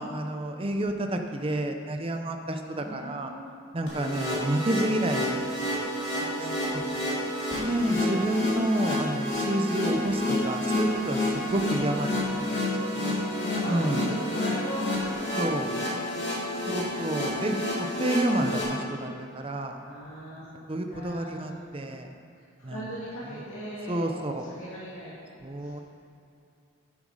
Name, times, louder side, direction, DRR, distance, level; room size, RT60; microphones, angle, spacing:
voice 1, 0.0-3.3 3.7-5.7 6.7-7.0 7.6-12.5 12.8-12.9 13.7-14.0 15.4-15.9 16.7-19.8 20.7-22.1 22.6-22.8 23.9-24.4 25.4-25.8, right 1 dB, 25° right, 5 dB, 0.6 m, -30 dB
voice 2, 2.6-3.5 5.8-8.6 12.2-17.4 19.8-20.4 20.9-21.7 22.3-25.1 25.6-25.7, equal, 85° left, -9 dB, 2.6 m, -40 dB
sound 1, 3.9-18.6, left 1 dB, 55° left, 2.7 m, -29 dB
11.0 x 7.9 x 4.9 m, 2.6 s
head